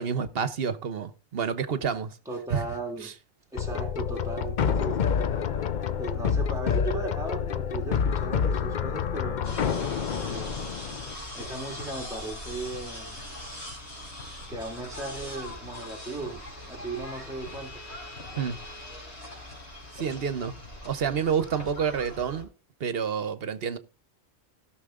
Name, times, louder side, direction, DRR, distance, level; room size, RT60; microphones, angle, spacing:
voice 1, 0.0-2.2 2.5-2.7 3.0-3.1 18.4-18.6 19.9-20.5 20.8-22.5 22.8-23.8, right 7 dB, 65° right, 1.1 m, -29 dB
voice 2, 2.3-3.1 3.5-5.0 6.0-10.5 11.3-13.2 14.5-17.8, right 2 dB, 5° right, 2.2 m, -37 dB
sound 1, 3.6-11.1, left 7 dB, 50° left, 0.7 m, -28 dB
sound 2, 9.4-22.4, left 1 dB, 80° left, 4.0 m, -41 dB
17.0 x 6.3 x 3.7 m
omnidirectional pair, 1.1 m